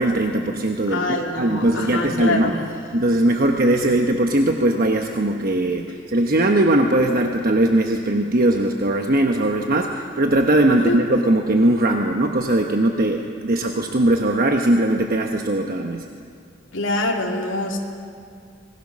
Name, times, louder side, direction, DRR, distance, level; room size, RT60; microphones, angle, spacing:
voice 1, 0.0-2.6 2.9-16.1, right 1 dB, 50° right, 3 dB, 1.0 m, -20 dB
voice 2, 0.9-2.6 10.7-11.0 16.7-17.8, left 2 dB, 80° left, 0 dB, 2.7 m, -24 dB
26.0 x 19.5 x 6.2 m, 2.3 s
head